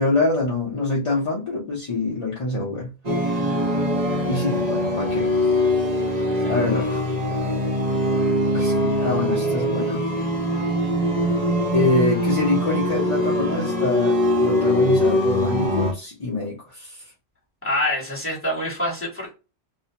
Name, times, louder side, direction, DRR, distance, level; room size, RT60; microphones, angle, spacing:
voice 1, 0.0-2.9 3.3-3.6 4.3-5.6 6.5-7.1 8.5-10.0 11.7-17.0, left 2 dB, 35° left, 0.5 m, -25 dB
sound 1, 3.0-15.9, equal, 45° right, 0.6 m, -22 dB
voice 2, 17.6-19.3, left 1 dB, 10° left, 1.2 m, -26 dB
2.5 x 2.1 x 2.8 m
omnidirectional pair, 1.4 m